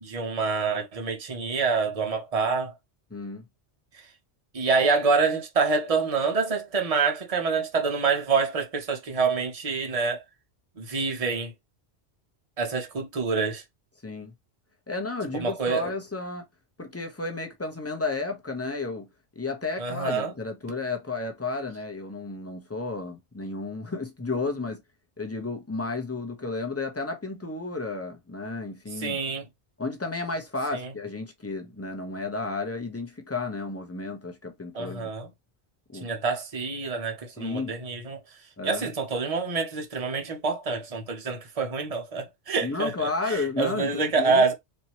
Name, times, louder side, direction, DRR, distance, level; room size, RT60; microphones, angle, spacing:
voice 1, 0.0-2.7 4.5-10.2 10.8-11.5 12.6-13.6 15.3-15.9 19.8-20.3 29.0-29.5 30.7-30.9 34.7-35.3 36.0-38.2 38.6-44.5, right 4 dB, 30° right, 1.0 m, -26 dB
voice 2, 3.1-3.4 14.0-14.3 14.9-16.5 16.8-19.1 19.4-24.8 25.2-29.2 29.8-35.1 35.9-36.1 37.4-37.8 38.6-38.8 42.6-44.4, left 3 dB, 15° left, 0.8 m, -32 dB
4.4 x 2.9 x 3.0 m
omnidirectional pair, 1.2 m